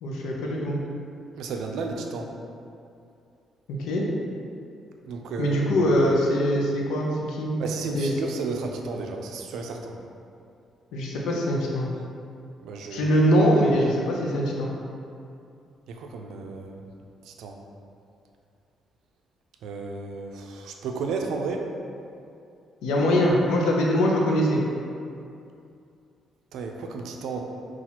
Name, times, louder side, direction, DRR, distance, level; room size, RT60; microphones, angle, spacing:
voice 1, 0.0-0.8 3.8-4.1 5.4-7.5 7.9-8.1 10.9-11.9 12.9-14.7 22.8-24.6, equal, 90° left, -2 dB, 0.6 m, -22 dB
voice 2, 1.4-2.3 5.1-5.8 7.6-10.0 12.6-13.1 15.9-16.8 17.2-17.6 19.6-21.7 26.5-27.4, right 4 dB, 80° right, 2 dB, 0.4 m, -33 dB
5.8 x 2.4 x 2.9 m, 2.5 s
cardioid pair, 90°, 0 cm